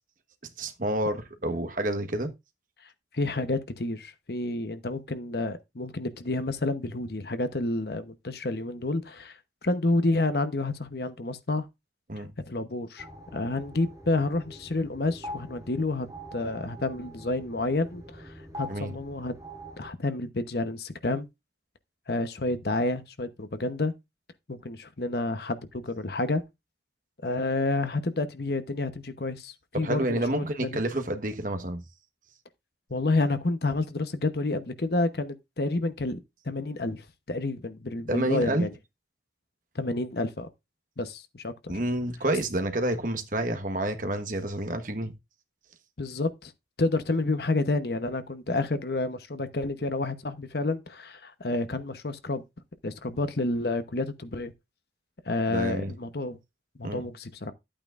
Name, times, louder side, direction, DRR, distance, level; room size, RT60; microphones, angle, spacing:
voice 1, 0.6-2.3 12.1-12.3 18.7-19.0 29.7-31.8 38.1-38.7 41.7-45.1 55.5-55.9 56.8-57.0, right 1 dB, 45° right, 1.2 m, -29 dB
voice 2, 3.1-9.3 9.6-11.7 12.5-13.1 13.3-19.3 19.8-21.3 22.1-23.9 24.5-26.4 27.2-30.8 32.9-37.0 37.3-38.7 39.7-40.5 41.0-41.7 46.0-46.5 46.8-52.4 52.8-54.5 55.3-56.4 56.8-57.5, left 2 dB, 60° left, 0.9 m, -29 dB
sound 1, 13.0-19.9, equal, 20° right, 6.9 m, -44 dB
11.5 x 8.9 x 2.5 m
head